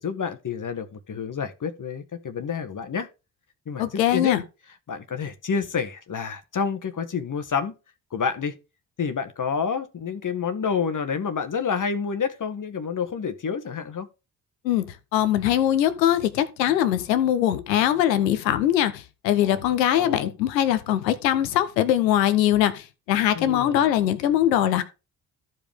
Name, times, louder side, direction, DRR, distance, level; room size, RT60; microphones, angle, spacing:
voice 1, 0.0-3.1 3.7-4.4 4.9-7.7 8.1-8.5 9.0-14.1 19.4-19.6 19.9-20.3 23.3-23.9, left 6 dB, 40° left, 1.5 m, -29 dB
voice 2, 3.8-4.4 14.6-14.8 15.1-24.8, left 11 dB, 85° left, 0.9 m, -22 dB
14.0 x 5.2 x 3.5 m
hypercardioid pair, 40°, 49 cm